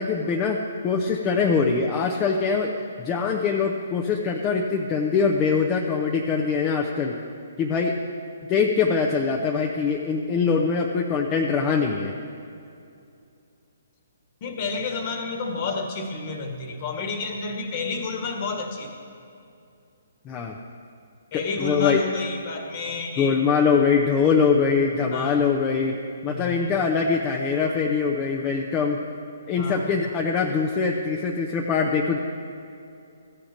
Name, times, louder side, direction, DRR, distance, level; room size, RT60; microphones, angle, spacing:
voice 1, 0.0-7.2 7.6-8.0 8.5-12.1 20.3-20.5 21.3-22.0 23.2-29.0 29.5-32.2, left 5 dB, 20° left, 1 dB, 0.7 m, -23 dB
voice 2, 14.4-18.9 21.3-23.4 25.1-25.4 26.3-26.6 29.6-29.8, left 4 dB, 40° left, 4 dB, 1.5 m, -30 dB
14.5 x 5.0 x 7.2 m, 2.6 s
figure-of-eight pair, 130°, 0 cm